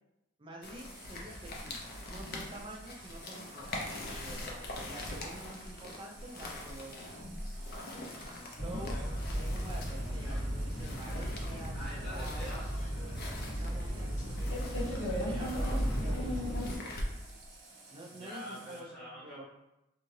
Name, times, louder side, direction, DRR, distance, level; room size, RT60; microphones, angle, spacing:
voice 1, 0.4-4.2 4.8-7.1 7.9-9.0 9.3-12.5 13.5-14.6 15.0-17.0 17.9-19.4, right 1 dB, 25° right, -1 dB, 0.4 m, -48 dB
sound 1, 0.6-17.5, left 1 dB, 45° left, 0.5 m, -44 dB
Water tap faucet, 0.8-18.8, right 2 dB, 50° right, 0.8 m, -55 dB
voice 2, 4.0-4.9 11.7-12.6 15.1-16.0 18.1-19.4, equal, 5° left, -13 dB, 0.9 m, -46 dB
sound 2, 8.6-16.8, equal, 65° left, 1.0 m, -35 dB
2.7 x 2.4 x 3.1 m, 0.91 s
head